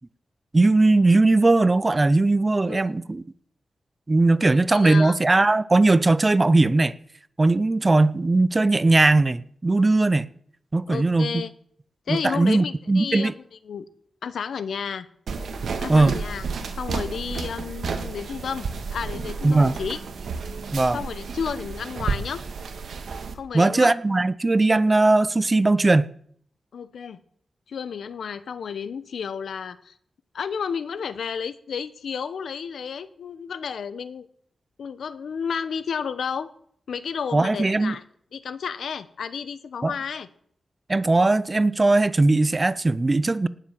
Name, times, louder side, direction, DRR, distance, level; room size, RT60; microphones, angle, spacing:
voice 1, 0.5-3.2 4.1-6.9 7.4-10.3 10.7-11.4 12.1-13.3 15.9-16.1 19.4-19.8 20.7-21.0 23.5-26.1 37.3-37.9 39.8-39.9 40.9-43.5, right 2 dB, 25° right, 0.5 m, -19 dB
voice 2, 4.4-5.2 10.9-11.5 12.1-13.3 13.6-13.9 14.2-15.1 15.8-16.4 16.8-20.0 20.9-22.4 23.3-23.9 26.7-27.2 27.7-29.9 30.3-34.3 34.8-36.5 36.9-38.0 38.3-40.3, left 6 dB, 85° left, 0.9 m, -32 dB
sound 1, 15.3-23.3, right 5 dB, 80° right, 1.7 m, -31 dB
18.5 x 7.4 x 7.5 m
wide cardioid pair, 125°, 0 cm